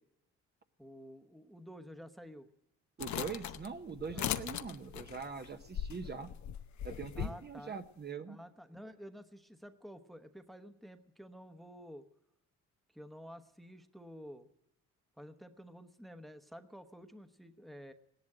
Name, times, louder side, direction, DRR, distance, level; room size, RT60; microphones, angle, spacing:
voice 1, 0.8-2.5 4.1-4.4 7.2-7.8 8.3-12.1 12.9-14.5 15.2-17.9, equal, ahead, 8 dB, 1.0 m, -51 dB
sound 1, 3.0-7.4, left 10 dB, 70° left, 0.9 m, -39 dB
voice 2, 3.0-6.3 6.8-8.4, right 5 dB, 35° right, 7 dB, 0.9 m, -42 dB
17.0 x 11.0 x 7.8 m, 0.88 s
cardioid pair, 90°, 30 cm